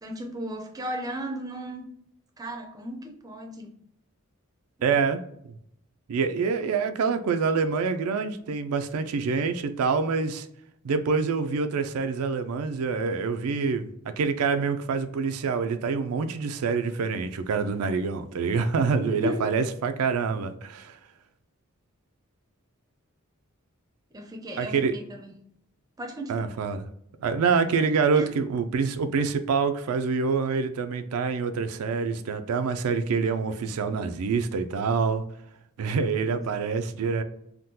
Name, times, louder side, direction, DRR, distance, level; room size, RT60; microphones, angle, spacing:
voice 1, 0.0-1.9 2.4-3.7 4.8-5.0 18.9-19.4 24.1-25.3 26.0-26.5 28.1-28.3 36.3-36.4, equal, 15° right, 1 dB, 0.4 m, -35 dB
voice 2, 4.8-5.2 6.1-10.5 10.8-21.0 24.6-25.0 26.3-26.9 27.2-35.2 35.8-37.2, right 5 dB, 85° right, 9 dB, 0.4 m, -26 dB
3.6 x 2.2 x 2.7 m, 0.72 s
head